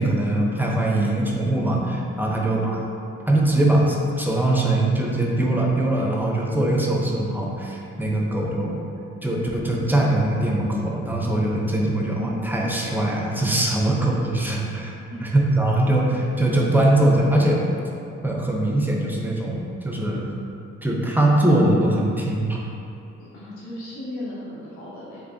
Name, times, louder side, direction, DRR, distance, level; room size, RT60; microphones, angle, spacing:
voice 1, 0.0-2.8 3.3-8.8 9.2-14.9 15.2-17.6 18.2-20.3 20.8-22.6, right 1 dB, 5° right, -2 dB, 0.5 m, -22 dB
voice 2, 2.2-2.6 15.1-15.3 23.2-25.2, left 1 dB, 80° left, -8 dB, 1.0 m, -36 dB
3.4 x 3.3 x 2.5 m, 2.7 s
cardioid pair, 90°, 30 cm